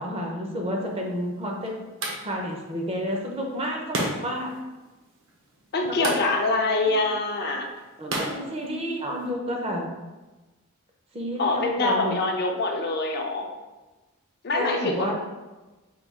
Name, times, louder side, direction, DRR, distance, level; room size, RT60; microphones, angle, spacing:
voice 1, 0.0-1.7 2.2-4.5 5.8-6.1 8.0-9.9 11.1-12.2 14.5-15.1, equal, 25° right, 0 dB, 0.6 m, -30 dB
sound 1, 0.8-9.3, right 1 dB, 60° right, 0.8 m, -36 dB
voice 2, 5.7-7.7 11.4-13.5 14.4-15.1, left 2 dB, 45° left, 2 dB, 0.5 m, -25 dB
4.6 x 2.3 x 3.5 m, 1.2 s
head